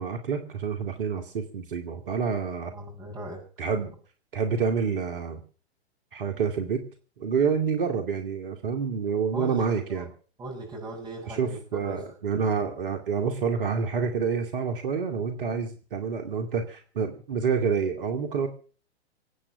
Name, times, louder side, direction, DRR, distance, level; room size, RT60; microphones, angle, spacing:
voice 1, 0.0-2.7 3.6-3.9 4.3-5.4 6.1-6.8 7.2-10.1 11.3-18.5, right 6 dB, 55° right, 6 dB, 2.5 m, -28 dB
voice 2, 2.7-3.4 9.3-10.1 10.4-12.1, right 1 dB, 15° right, -6 dB, 7.3 m, -39 dB
24.5 x 8.9 x 6.0 m, 0.40 s
figure-of-eight pair, 110°, 33 cm